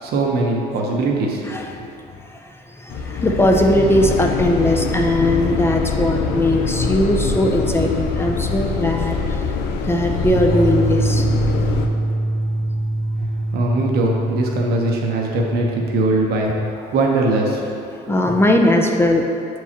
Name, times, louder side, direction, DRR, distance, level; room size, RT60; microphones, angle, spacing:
voice 1, 0.0-1.6 13.5-16.5 16.9-17.8, right 2 dB, 70° right, 0 dB, 1.0 m, -21 dB
voice 2, 1.4-1.9 2.8-9.4 9.8-11.3 18.1-19.3, left 1 dB, 15° left, 2 dB, 0.4 m, -19 dB
sound 1, 2.9-11.9, left 4 dB, 75° left, 0.5 m, -24 dB
sound 2, 10.2-16.5, right 1 dB, 20° right, 1.0 m, -23 dB
7.1 x 4.7 x 2.9 m, 2.6 s
cardioid pair, 110°, 17 cm